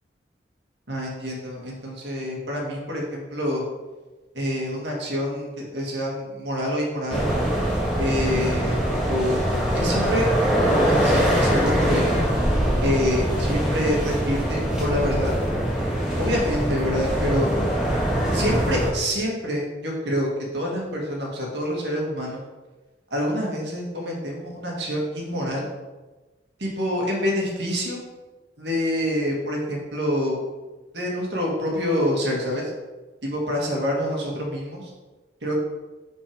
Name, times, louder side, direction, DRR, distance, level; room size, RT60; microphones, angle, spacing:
voice 1, 0.9-3.6 4.3-7.3 8.0-8.8 9.1-10.3 10.6-12.2 12.8-15.3 16.2-17.5 18.3-22.4 23.1-25.7 26.6-28.0 28.6-30.4 30.9-32.7 33.2-34.9 35.4-35.5, equal, 75° right, -2 dB, 1.9 m, -26 dB
sound 1, 7.1-18.9, equal, 5° right, 1.6 m, -23 dB
6.0 x 4.4 x 5.0 m, 1.2 s
head